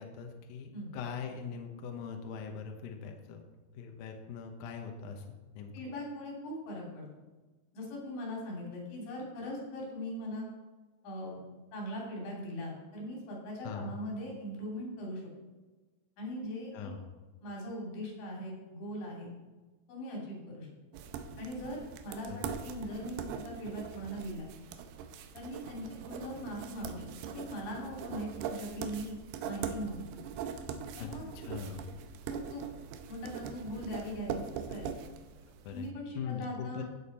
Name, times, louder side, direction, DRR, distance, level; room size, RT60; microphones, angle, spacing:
voice 1, 0.0-3.4 3.7-5.3 5.5-5.7 13.6-14.0 16.7-17.0 22.3-22.5 31.0-31.9 35.6-35.9 36.1-36.8, left 6 dB, 70° left, 3 dB, 2.4 m, -41 dB
voice 2, 5.7-7.1 7.7-10.5 11.0-11.4 11.7-15.3 16.2-16.9 17.4-19.3 19.9-20.7 21.4-24.5 25.3-27.0 27.3-29.2 29.5-30.0 31.0-31.3 32.3-32.7 33.1-34.9 35.7-36.8, equal, 85° left, -3 dB, 5.5 m, -40 dB
sound 1, 20.9-35.8, right 7 dB, 80° right, 2.5 m, -42 dB
15.5 x 7.3 x 4.3 m, 1.3 s
omnidirectional pair, 5.0 m